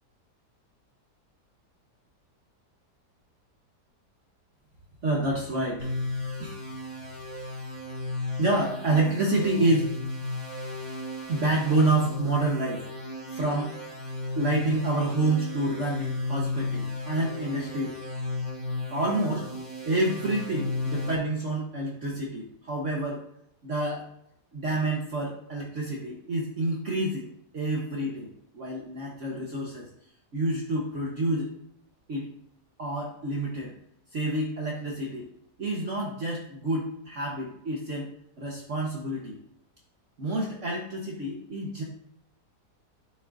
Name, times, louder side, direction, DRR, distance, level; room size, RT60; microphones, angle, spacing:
voice 1, 5.0-6.0 6.4-6.6 8.4-9.9 11.3-12.9 13.3-13.8 14.3-18.0 18.9-19.5 19.8-23.2 23.6-24.0 24.5-28.3 28.5-29.9 30.3-31.5 32.1-32.3 32.8-33.7 34.1-35.2 35.6-38.1 38.4-39.4 40.2-41.8, right 2 dB, 50° right, -2 dB, 1.5 m, -28 dB
sound 1, 5.8-21.1, left 2 dB, 25° right, 3.9 m, -34 dB
13.0 x 7.8 x 2.7 m, 0.74 s
omnidirectional pair, 1.8 m